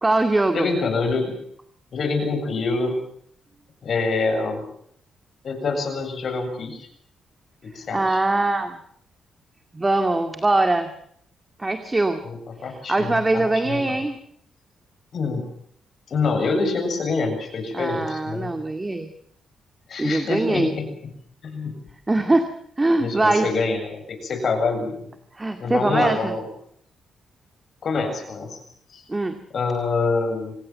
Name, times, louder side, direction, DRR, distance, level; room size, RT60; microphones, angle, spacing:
voice 1, 0.0-0.7 7.9-8.8 9.7-10.9 11.6-12.2 12.7-14.2 17.7-19.1 20.0-20.7 22.1-22.5 22.8-23.5 25.3-26.3 29.1-29.3, right 2 dB, 20° right, 7 dB, 2.2 m, -22 dB
voice 2, 0.5-1.3 1.9-3.0 3.8-4.6 5.4-6.9 7.6-8.2 12.2-12.4 12.6-14.0 15.1-15.5 16.1-18.5 19.9-20.9 21.4-21.7 22.2-22.3 23.0-25.0 25.6-26.5 27.8-28.6 28.9-29.0 29.5-30.5, left 4 dB, 55° left, 6 dB, 7.7 m, -26 dB
27.0 x 18.5 x 7.6 m, 0.67 s
cardioid pair, 95°, 0 cm